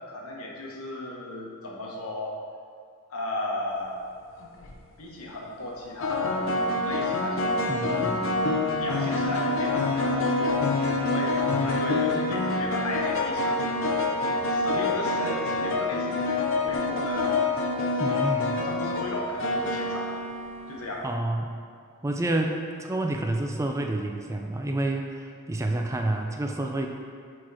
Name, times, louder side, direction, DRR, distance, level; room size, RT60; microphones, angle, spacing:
voice 1, 0.1-2.4 3.1-4.0 5.0-6.4 6.8-8.1 8.8-10.6 11.1-13.6 14.5-17.4 18.6-20.1 20.7-21.0, left 1 dB, 85° left, -2 dB, 1.2 m, -35 dB
sound 1, 4.4-4.8 6.0-20.8, left 2 dB, 65° left, 0.7 m, -26 dB
voice 2, 7.7-8.2 11.6-11.8 18.0-18.6 21.0-21.5 22.0-26.9, right 1 dB, 15° right, 3 dB, 0.3 m, -29 dB
6.2 x 4.4 x 4.8 m, 2.2 s
head